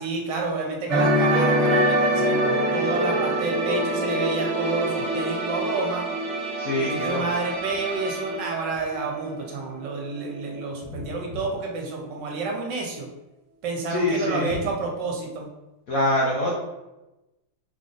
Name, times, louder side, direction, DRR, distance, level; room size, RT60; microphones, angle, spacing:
voice 1, 0.0-6.1 6.8-13.1 13.6-15.5, right 3 dB, 65° right, 0 dB, 1.3 m, -29 dB
sound 1, 0.9-9.6 9.8-10.1, right 1 dB, 35° right, 1.2 m, -25 dB
voice 2, 6.6-7.2 13.9-14.5 15.9-16.5, left 1 dB, 60° left, -4 dB, 0.9 m, -24 dB
3.6 x 3.6 x 3.8 m, 0.99 s
omnidirectional pair, 2.2 m